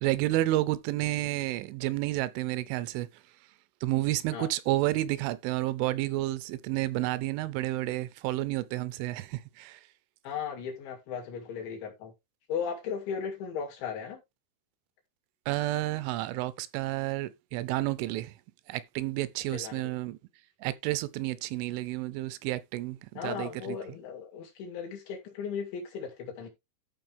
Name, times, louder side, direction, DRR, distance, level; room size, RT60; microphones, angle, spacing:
voice 1, 0.0-3.1 3.8-9.8 15.5-18.3 18.7-20.2 20.6-23.8, right 16 dB, 80° right, 3.0 m, -30 dB
voice 2, 10.2-12.1 12.5-14.2 19.5-19.9 23.2-26.5, left 7 dB, 70° left, 4.6 m, -36 dB
13.5 x 4.8 x 3.4 m
omnidirectional pair, 5.6 m